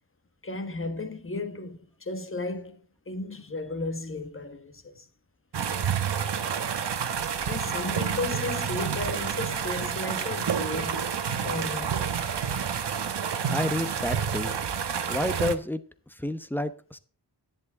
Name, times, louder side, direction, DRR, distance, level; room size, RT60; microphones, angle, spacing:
voice 1, 0.4-2.8 3.1-5.1 7.2-11.1 11.4-12.2, left 2 dB, 30° left, 1.5 m, -35 dB
sound 1, 5.5-15.5, right 7 dB, 75° right, 1.2 m, -29 dB
voice 2, 13.5-14.6 15.1-15.8 16.2-17.0, left 1 dB, 5° left, 1.0 m, -29 dB
11.0 x 10.5 x 3.7 m
wide cardioid pair, 100°, 42 cm